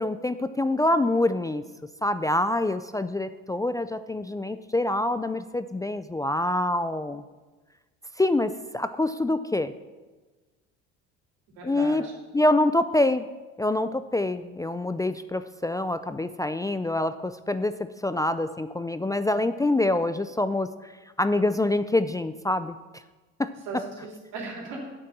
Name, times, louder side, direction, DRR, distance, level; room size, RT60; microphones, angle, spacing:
voice 1, 0.0-1.6 2.0-7.2 8.2-9.7 11.6-12.0 12.3-13.3 13.6-20.9 21.2-22.8 23.4-23.5, left 2 dB, 10° left, 11 dB, 0.4 m, -26 dB
voice 2, 11.6-12.1 23.6-24.8, right 3 dB, 80° right, -1 dB, 3.4 m, -37 dB
8.4 x 7.6 x 6.2 m, 1.2 s
hypercardioid pair, 70°, 33 cm